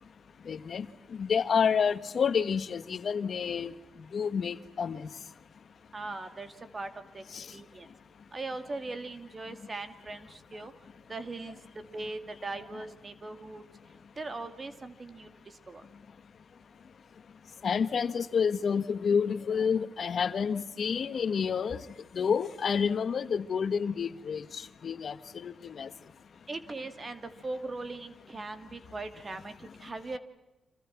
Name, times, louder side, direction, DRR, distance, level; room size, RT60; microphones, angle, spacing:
voice 1, 0.5-0.8 1.2-3.7 4.1-5.1 7.3-7.4 17.6-21.8 22.1-24.4 24.8-25.1 25.4-25.9, left 6 dB, 60° left, 12 dB, 1.4 m, -29 dB
voice 2, 5.9-7.2 7.5-7.9 8.3-10.7 11.1-11.6 11.9-13.6 14.2-15.3 15.7-15.8 26.5-30.2, right 3 dB, 35° right, 10 dB, 2.5 m, -40 dB
30.0 x 26.5 x 6.0 m, 1.0 s
cardioid pair, 100°, 0 cm